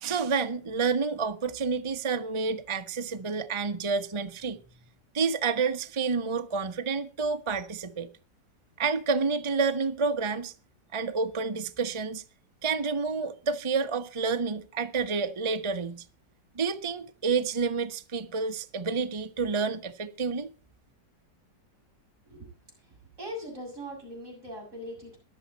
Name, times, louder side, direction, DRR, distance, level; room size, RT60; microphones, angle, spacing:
voice 1, 0.0-4.6 5.1-8.1 8.8-10.5 10.9-12.2 12.6-16.0 16.5-20.5, right 5 dB, 20° right, 0.8 m, -29 dB
voice 2, 23.2-25.2, equal, 40° right, 7.4 m, -40 dB
22.0 x 7.4 x 4.1 m
omnidirectional pair, 2.0 m